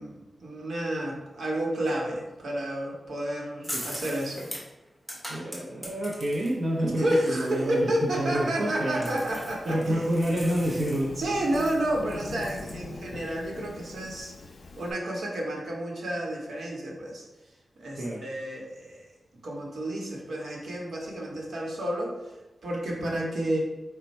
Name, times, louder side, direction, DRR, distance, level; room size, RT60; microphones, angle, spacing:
voice 1, 0.0-4.5 6.8-10.0 11.2-14.3 14.8-17.2 17.8-19.0 19.4-22.4 22.6-23.6, right 1 dB, 80° right, -2 dB, 1.0 m, -30 dB
sound 1, 3.6-6.5 6.8-12.7, equal, ahead, 0.9 m, -41 dB
voice 2, 5.3-9.1 9.6-11.1 18.0-18.2, right 1 dB, 60° right, -5 dB, 0.6 m, -28 dB
Thunderstorm / Rain, 7.2-14.9, left 3 dB, 65° left, 0.4 m, -43 dB
4.3 x 2.2 x 4.1 m, 1.1 s
wide cardioid pair, 180°, 0 cm